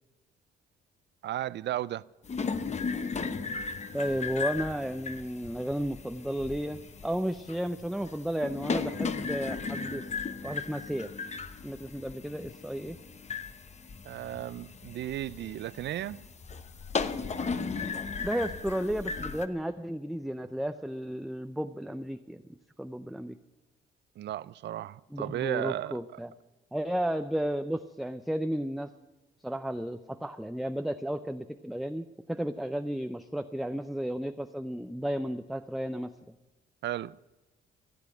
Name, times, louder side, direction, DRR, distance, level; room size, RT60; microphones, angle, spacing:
voice 1, 1.2-2.0 14.0-16.2 24.2-25.9 36.8-37.2, right 13 dB, 60° right, 0.4 m, -34 dB
sound 1, 2.2-19.5, left 5 dB, 35° left, 0.9 m, -36 dB
voice 2, 3.9-10.1 10.4-11.1 11.6-13.0 18.2-22.4 22.8-23.4 25.1-26.3 26.7-28.9 29.4-36.1, equal, ahead, 0.5 m, -33 dB
16.0 x 8.1 x 9.9 m
cardioid pair, 90°, 20 cm